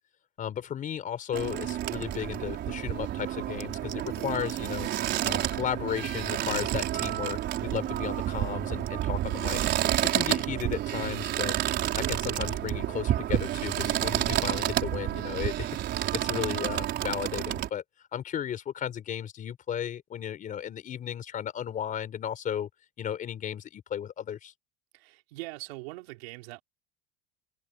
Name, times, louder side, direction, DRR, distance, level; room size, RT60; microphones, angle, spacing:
voice 1, 0.4-4.9 5.2-9.6 10.1-11.5 11.9-15.7 16.1-17.8 18.1-22.7 23.0-24.5, left 9 dB, 25° left, 4.7 m, -34 dB
sound 1, 1.3-17.7, right 13 dB, 35° right, 4.5 m, -30 dB
voice 2, 24.9-26.6, right 23 dB, 80° right, 4.2 m, -42 dB
cardioid pair, 170°, 30 cm